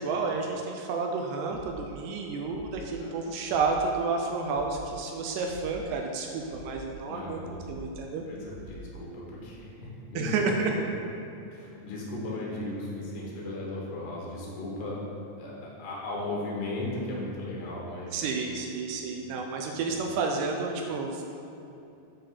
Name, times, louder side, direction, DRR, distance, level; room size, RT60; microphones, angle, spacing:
voice 1, 0.0-7.4 7.7-8.2 10.2-10.7 18.1-21.2, right 4 dB, 80° right, 2 dB, 2.5 m, -30 dB
sound 1, 1.5-1.9 2.5-2.9 3.5-3.9 4.5-4.9 5.5-5.9 6.5-6.9 7.5-7.9 8.5-8.9, left 2 dB, 45° right, 2.1 m, -46 dB
voice 2, 3.0-3.4 7.1-7.5 8.3-10.8 11.5-15.0 15.4-18.1 19.2-19.3 19.7-19.9, left 2 dB, 75° left, -4 dB, 3.3 m, -36 dB
8.8 x 3.5 x 5.6 m, 2.7 s
omnidirectional pair, 5.0 m